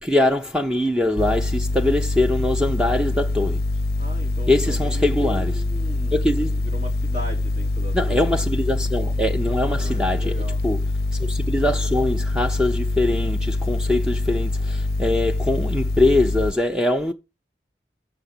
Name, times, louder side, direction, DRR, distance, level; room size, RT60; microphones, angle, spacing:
voice 1, 0.0-3.6 4.5-5.5 6.1-6.6 7.9-10.3 10.6-10.8 11.1-17.1, left 1 dB, 5° right, 0.5 m, -22 dB
sound 1, 1.2-16.5, left 2 dB, 60° left, 0.5 m, -24 dB
voice 2, 4.0-8.3 9.6-10.6, right 1 dB, 45° right, 2.9 m, -38 dB
7.1 x 5.6 x 6.6 m
head